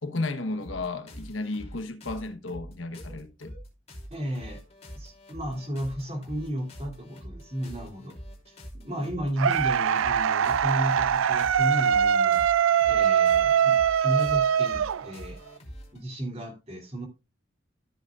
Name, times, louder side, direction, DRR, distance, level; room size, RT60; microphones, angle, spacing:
voice 1, 0.0-3.5, left 2 dB, 75° left, 1.1 m, -33 dB
sound 1, 0.6-16.0, equal, 30° left, 3.0 m, -44 dB
voice 2, 4.1-4.6 4.9-8.2 8.5-12.4 12.9-13.8 14.0-15.4 15.9-17.1, equal, 30° right, 2.7 m, -33 dB
sound 2, 9.4-15.5, right 8 dB, 85° right, 0.4 m, -22 dB
13.5 x 7.8 x 2.4 m
head